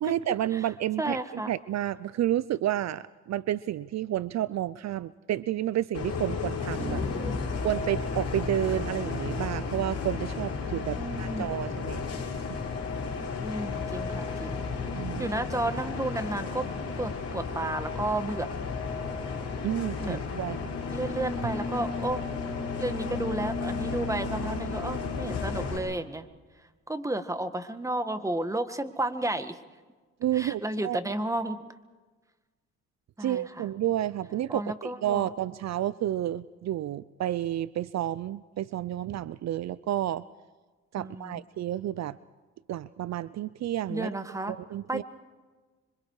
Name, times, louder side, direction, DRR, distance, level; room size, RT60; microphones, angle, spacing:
voice 1, 0.0-7.0 7.6-12.0 15.0-15.3 19.6-20.6 30.2-31.0 33.2-40.2 40.9-42.2 42.7-44.1 44.5-45.0, right 12 dB, 60° right, 17 dB, 0.6 m, -30 dB
voice 2, 1.0-1.5 6.8-7.4 10.9-11.5 13.4-14.6 15.2-16.7 17.0-18.5 20.0-20.2 20.9-22.2 22.8-26.2 26.9-29.6 30.3-31.6 33.2-33.7 34.5-35.3 41.0-41.4 43.9-44.5 44.9-45.0, right 1 dB, 10° right, 9 dB, 1.8 m, -32 dB
Bus, 5.9-25.8, left 4 dB, 55° left, 6.4 m, -33 dB
27.0 x 24.5 x 4.9 m, 1.3 s
cardioid pair, 90°, 30 cm